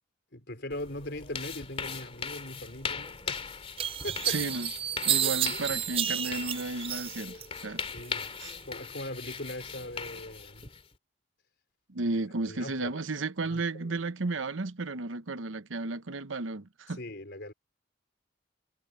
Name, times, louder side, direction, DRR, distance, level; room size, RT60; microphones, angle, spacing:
voice 1, 0.3-3.5 4.0-4.4 5.2-5.4 7.9-8.3 8.6-10.7 12.4-13.0 13.5-14.0 17.0-17.5, left 1 dB, 60° left, 4.8 m, -40 dB
sound 1, 0.7-10.9, left 5 dB, 30° left, 2.9 m, -40 dB
sound 2, 3.1-3.2 3.8-7.5 7.8-8.5, right 10 dB, 30° right, 0.4 m, -31 dB
voice 2, 4.2-4.7 5.0-7.8 8.4-8.5 11.9-17.0, right 3 dB, 90° right, 1.0 m, -33 dB
head